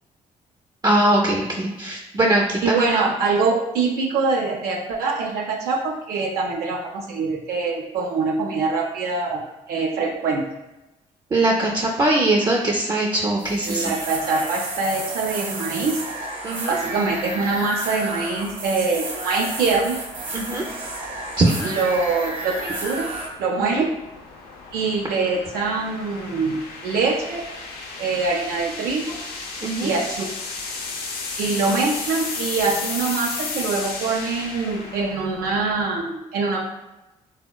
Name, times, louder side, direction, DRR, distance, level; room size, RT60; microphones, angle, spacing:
voice 1, 0.8-3.0 11.3-13.9 16.4-16.8 20.3-20.6 21.4-21.7 23.6-23.8 29.6-29.9, right 1 dB, 25° right, -2 dB, 0.4 m, -21 dB
voice 2, 2.6-10.4 13.6-16.0 16.7-20.0 21.6-23.1 23.4-24.0 24.7-27.4 28.0-29.2 29.8-30.3 31.4-36.6, right 4 dB, 80° right, -1 dB, 0.4 m, -24 dB
sound 1, 13.4-23.3, right 2 dB, 60° right, 0.9 m, -32 dB
sound 2, 19.6-35.9, left 4 dB, 80° left, 0.4 m, -34 dB
3.5 x 2.0 x 2.2 m, 0.98 s
supercardioid pair, 65°, 16 cm